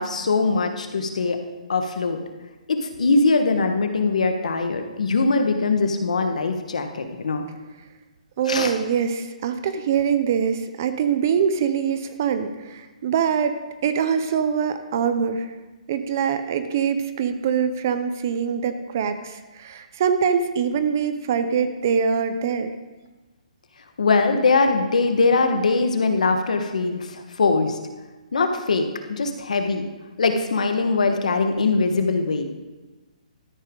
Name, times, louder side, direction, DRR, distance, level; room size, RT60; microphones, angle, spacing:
voice 1, 0.0-1.4 1.7-2.2 2.7-7.4 8.5-8.7 24.0-27.8 28.3-29.9 30.2-32.5, left 3 dB, 65° left, 6 dB, 1.3 m, -21 dB
voice 2, 8.4-15.5 15.9-22.7, right 7 dB, 25° right, 10 dB, 0.5 m, -23 dB
13.0 x 10.0 x 3.7 m, 1.2 s
hypercardioid pair, 180°, 4 cm